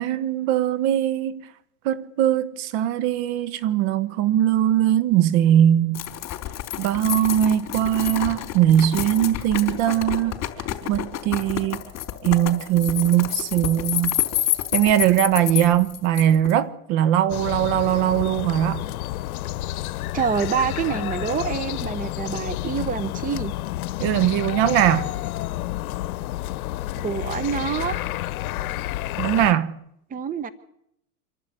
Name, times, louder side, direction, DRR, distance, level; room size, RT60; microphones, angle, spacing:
voice 1, 0.0-1.5 1.8-6.0 6.8-10.4 10.9-11.8 12.2-14.2 14.7-18.8 24.0-25.1 29.2-29.8, right 11 dB, 55° right, 1.5 m, -20 dB
sound 1, 5.9-16.5, left 13 dB, 40° left, 4.1 m, -28 dB
sound 2, 17.3-29.5, left 15 dB, 75° left, 0.9 m, -30 dB
voice 2, 20.1-23.5 27.0-28.0 30.1-30.5, right 7 dB, 20° right, 1.1 m, -26 dB
26.0 x 12.0 x 9.3 m
hypercardioid pair, 115°, 43 cm